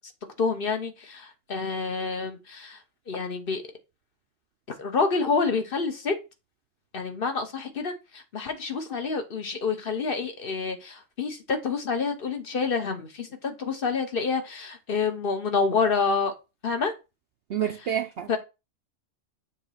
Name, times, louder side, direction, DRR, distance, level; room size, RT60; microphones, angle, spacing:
voice 1, 0.4-3.6 4.8-6.1 6.9-16.3 16.6-16.9 18.3-18.4, left 4 dB, 50° left, 1.2 m, -28 dB
voice 2, 17.5-18.4, right 9 dB, 60° right, 0.7 m, -28 dB
7.1 x 3.0 x 5.7 m
omnidirectional pair, 1.3 m